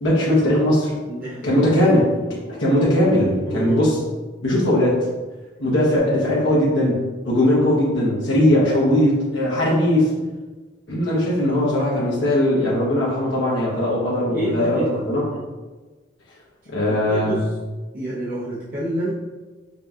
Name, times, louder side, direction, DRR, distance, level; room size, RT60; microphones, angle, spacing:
voice 1, 0.0-0.9 1.4-2.0 2.5-4.0 4.4-5.0 5.6-10.1 10.9-14.8 15.1-15.2 16.7-17.4, left 1 dB, 85° left, -6 dB, 1.0 m, -19 dB
voice 2, 1.1-1.7 3.4-3.9 14.3-15.4 16.9-17.6 17.9-19.1, right 1 dB, 50° right, -10 dB, 0.7 m, -28 dB
5.2 x 2.7 x 2.4 m, 1.3 s
head